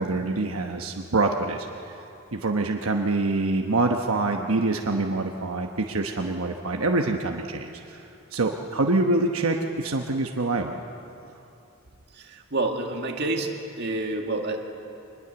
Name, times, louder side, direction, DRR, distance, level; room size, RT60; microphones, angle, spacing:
voice 1, 0.0-1.7 2.3-8.0 8.3-10.7, right 2 dB, 80° right, 3 dB, 1.1 m, -25 dB
voice 2, 12.2-13.5 13.8-14.6, right 2 dB, 55° right, 2 dB, 2.0 m, -28 dB
24.0 x 20.5 x 7.0 m, 2.7 s
head